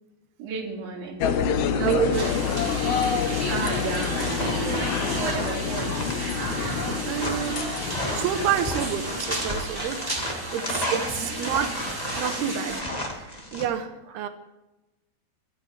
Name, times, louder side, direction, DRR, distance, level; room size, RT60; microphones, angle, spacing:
voice 1, 0.4-1.3 1.7-2.0 2.5-2.6 3.5-6.0 14.1-14.2, right 4 dB, 55° right, -1 dB, 3.4 m, -33 dB
sound 1, 1.2-9.0, left 7 dB, 85° left, 1.6 m, -28 dB
voice 2, 1.8-2.3 6.7-7.8 8.1-14.3, right 9 dB, 85° right, 8 dB, 3.1 m, -29 dB
sound 2, 2.1-12.8, right 1 dB, 10° right, 1.4 m, -33 dB
sound 3, 4.2-13.7, left 1 dB, 55° left, 0.4 m, -33 dB
23.0 x 12.5 x 3.3 m, 0.99 s
omnidirectional pair, 4.6 m